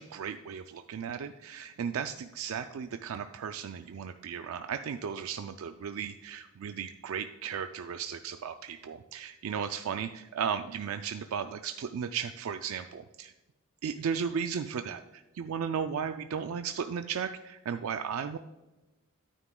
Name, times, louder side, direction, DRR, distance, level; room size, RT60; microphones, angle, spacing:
voice 1, 0.0-13.3 13.8-18.4, right 7 dB, 75° right, 8 dB, 0.4 m, -35 dB
9.6 x 9.1 x 2.3 m, 1.1 s
head